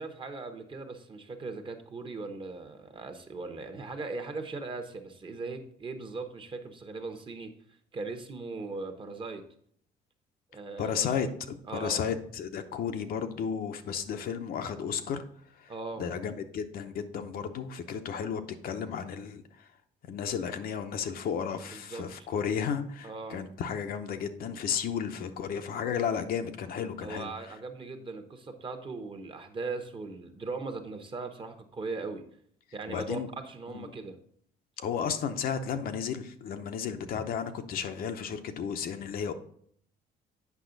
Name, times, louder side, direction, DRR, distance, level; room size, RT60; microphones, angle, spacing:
voice 1, 0.0-7.5 7.9-9.4 10.5-11.1 11.7-12.0 15.7-16.1 21.7-22.0 23.0-23.4 27.0-32.2 32.7-34.2, right 3 dB, 30° right, 7 dB, 1.0 m, -39 dB
voice 2, 10.8-15.2 15.5-15.7 16.0-19.7 20.1-27.3 32.9-33.3 33.7-33.9 34.8-39.3, left 7 dB, 60° left, 7 dB, 0.7 m, -33 dB
8.3 x 5.4 x 3.9 m, 0.64 s
cardioid pair, 110°, 17 cm